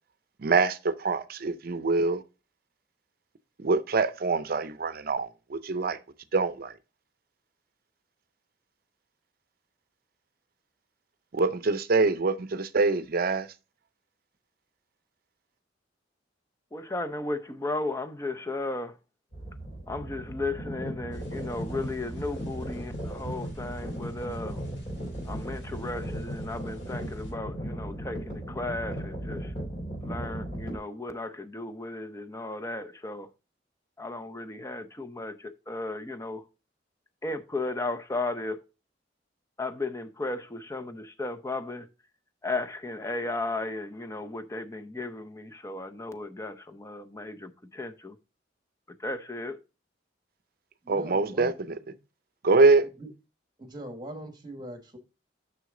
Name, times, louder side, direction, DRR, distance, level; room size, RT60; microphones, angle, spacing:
voice 1, 0.4-2.2 3.6-6.0 6.3-6.7 11.3-13.5 50.9-51.5 52.4-52.9, right 3 dB, 55° right, 0.6 m, -24 dB
voice 2, 16.7-19.0 19.9-24.6 25.2-29.5 30.0-33.3 34.0-36.4 37.2-38.6 39.6-41.9 42.4-48.2 49.0-49.6, left 2 dB, 15° left, 0.6 m, -35 dB
sound 1, 19.3-30.8, equal, 40° left, 3.6 m, -36 dB
sound 2, 21.1-27.3, equal, 80° left, 3.1 m, -51 dB
voice 3, 50.8-51.5 51.9-52.0 53.0-53.1 53.6-55.0, right 1 dB, 25° right, 1.4 m, -41 dB
6.2 x 6.1 x 3.7 m
head